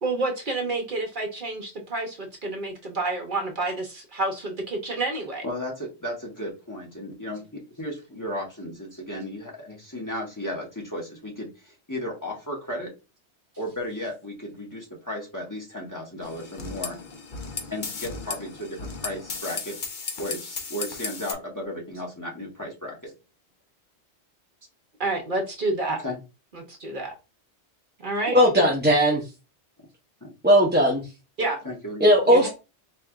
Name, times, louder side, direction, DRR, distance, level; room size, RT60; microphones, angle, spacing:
voice 1, 0.0-5.4 25.0-26.0 26.5-27.1 28.0-28.4 31.4-31.6 32.3-32.5, right 2 dB, 50° right, 0.9 m, -29 dB
voice 2, 5.4-12.9 13.6-17.0 17.7-19.7 20.2-23.1 26.0-26.2 30.2-30.3 31.6-32.1, left 1 dB, 15° left, 1.1 m, -34 dB
sound 1, 16.2-21.3, left 4 dB, 50° left, 0.8 m, -35 dB
voice 3, 28.3-29.2 30.4-31.1 32.0-32.5, equal, 10° right, 0.6 m, -18 dB
4.4 x 3.2 x 2.4 m
omnidirectional pair, 1.2 m